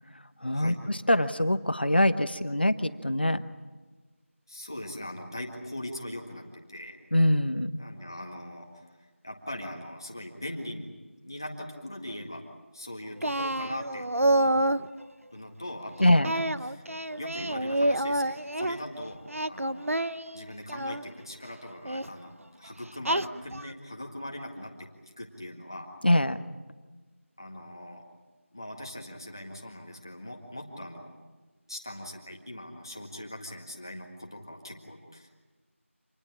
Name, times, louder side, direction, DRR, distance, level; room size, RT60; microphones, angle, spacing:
voice 1, 0.4-3.4 7.1-7.7 16.0-16.3 26.0-26.4, left 1 dB, 45° left, 11 dB, 1.2 m, -24 dB
voice 2, 4.5-7.0 7.8-9.0 9.2-10.9 11.2-12.4 12.7-14.6 15.3-16.8 17.2-19.9 20.3-24.9 25.2-25.9 27.4-28.0 28.5-31.1 31.7-35.3, left 1 dB, 15° left, 1 dB, 1.8 m, -41 dB
Singing, 13.2-14.9 16.2-18.8 19.3-21.0 21.8-22.1 23.0-23.7, right 1 dB, 75° right, 1.0 m, -28 dB
27.0 x 20.0 x 8.8 m, 1.3 s
figure-of-eight pair, 180°, 7 cm